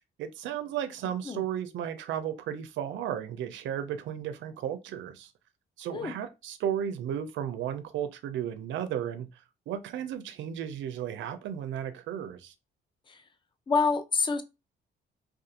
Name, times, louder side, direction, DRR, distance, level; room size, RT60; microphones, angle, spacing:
voice 1, 0.2-5.3 5.8-12.5, right 9 dB, 70° right, 0.4 m, -34 dB
voice 2, 13.7-14.4, left 4 dB, 25° left, 0.4 m, -27 dB
2.5 x 2.3 x 2.7 m
cardioid pair, 90°, 20 cm